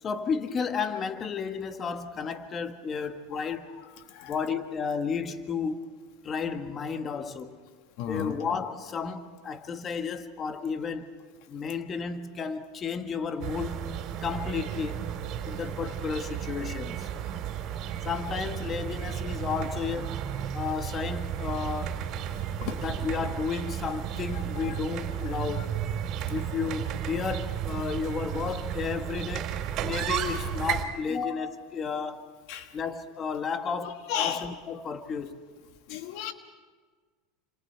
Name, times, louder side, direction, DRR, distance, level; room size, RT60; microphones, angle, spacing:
voice 1, 0.0-3.7 4.2-5.8 6.2-7.6 8.1-11.1 11.5-13.9 14.2-15.0 15.5-17.1 18.0-20.2 20.5-22.0 22.7-25.7 26.3-29.6 29.8-32.3 32.7-35.4, left 6 dB, 35° left, 1.7 m, -32 dB
voice 2, 8.0-8.3 22.6-22.8 24.6-24.7 32.5-32.7 34.1-34.4 35.9-36.3, left 10 dB, 65° left, 1.4 m, -32 dB
sound 1, 13.4-30.8, right 9 dB, 50° right, 3.6 m, -33 dB
28.5 x 27.0 x 4.6 m
hypercardioid pair, 100°, 0 cm